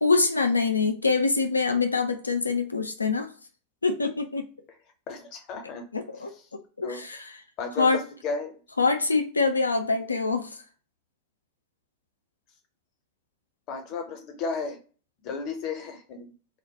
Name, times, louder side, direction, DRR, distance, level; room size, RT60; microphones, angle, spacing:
voice 1, 0.0-3.3 3.8-4.5 5.9-6.3 6.8-7.3 7.8-8.0 8.8-10.6, left 4 dB, 80° left, 0.3 m, -24 dB
voice 2, 5.1-5.9 6.8-7.0 7.6-8.5 13.7-14.8 15.2-16.3, left 4 dB, 40° left, 0.6 m, -33 dB
2.1 x 2.0 x 2.8 m
figure-of-eight pair, 90°, 0 cm